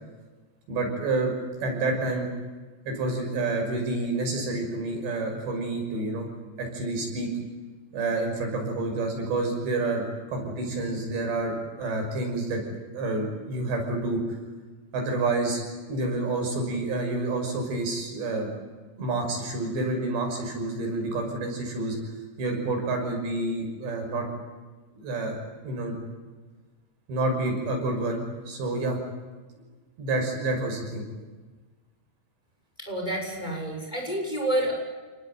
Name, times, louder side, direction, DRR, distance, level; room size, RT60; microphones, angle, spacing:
voice 1, 0.7-1.3 1.6-2.3 2.9-6.3 6.6-7.3 7.9-12.6 12.9-14.4 14.9-15.6 15.9-18.5 19.0-22.0 22.4-24.3 24.9-25.4 25.6-26.0 27.1-29.0 30.0-31.0, right 2 dB, 85° right, 2 dB, 8.3 m, -28 dB
voice 2, 32.8-34.7, right 1 dB, 10° left, 1 dB, 6.6 m, -29 dB
29.5 x 20.0 x 9.4 m, 1.3 s
omnidirectional pair, 4.9 m